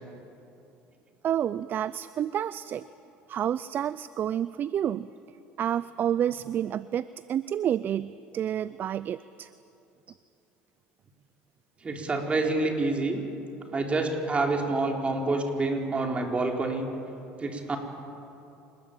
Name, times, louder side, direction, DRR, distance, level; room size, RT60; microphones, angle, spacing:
voice 1, 1.2-2.8 3.3-5.1 5.6-9.5, right 10 dB, 45° right, 17 dB, 0.5 m, -29 dB
voice 2, 11.8-13.2 13.7-16.9 17.4-17.8, right 3 dB, 25° right, 2 dB, 4.3 m, -27 dB
27.0 x 20.5 x 8.9 m, 2.8 s
supercardioid pair, 95°, 5 cm